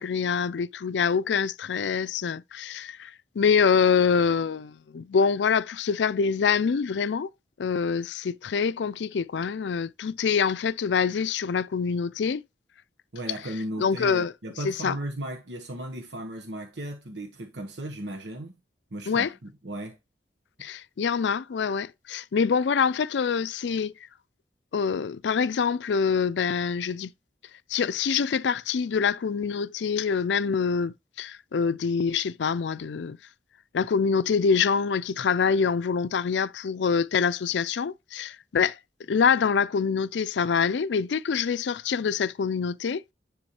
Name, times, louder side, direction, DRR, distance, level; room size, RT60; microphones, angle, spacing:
voice 1, 0.0-7.3 7.6-12.4 13.8-14.3 14.6-15.0 19.1-19.3 20.6-23.9 24.7-27.1 27.7-33.2 33.7-38.8 39.1-43.1, left 6 dB, 85° left, 0.4 m, -25 dB
voice 2, 13.1-18.5 18.9-20.0, right 1 dB, 85° right, 1.2 m, -36 dB
10.0 x 3.6 x 3.1 m
head